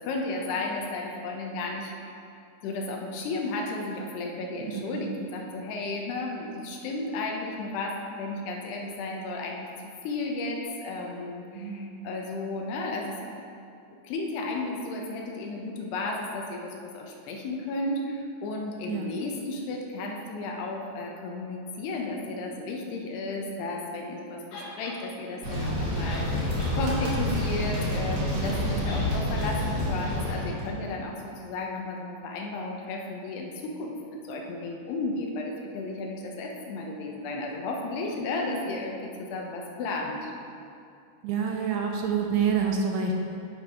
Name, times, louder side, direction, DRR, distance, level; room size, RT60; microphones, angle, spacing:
voice 1, 0.0-2.2 2.6-9.7 10.0-13.4 14.0-40.3, left 2 dB, 80° left, 1 dB, 2.7 m, -33 dB
voice 2, 11.5-12.6 18.9-19.1 28.6-29.0 41.2-43.1, right 6 dB, 85° right, 1 dB, 2.5 m, -28 dB
sound 1, 24.5-25.0 25.8-25.9 26.0-26.8 27.1-27.2 28.8-29.1 29.4-29.5, left 2 dB, 55° left, 3.2 m, -42 dB
sound 2, 25.4-30.7, left 1 dB, 60° right, 3.1 m, -28 dB
10.5 x 4.0 x 4.8 m, 2.5 s
omnidirectional pair, 4.9 m